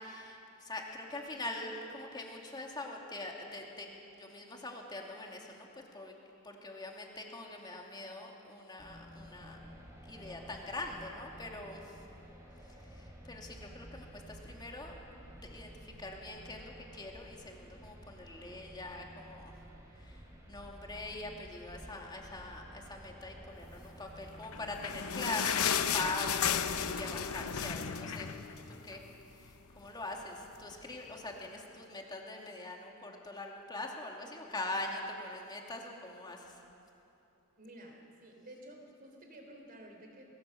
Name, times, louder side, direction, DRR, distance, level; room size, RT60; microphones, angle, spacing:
voice 1, 0.0-3.9 4.1-5.7 5.9-6.1 6.4-9.6 10.0-11.9 12.9-14.9 15.4-15.7 16.0-19.5 20.0-20.2 20.5-28.3 28.7-29.0 29.4-36.6, left 2 dB, 20° left, 0 dB, 2.4 m, -43 dB
sound 1, 8.8-27.4, equal, 15° right, 3.1 m, -52 dB
sound 2, 24.4-29.1 29.5-29.6 29.9-30.0 30.7-30.8, left 8 dB, 80° left, 0.9 m, -33 dB
voice 2, 37.6-40.2, right 1 dB, 45° right, 2 dB, 3.5 m, -52 dB
21.0 x 17.0 x 7.8 m, 2.9 s
head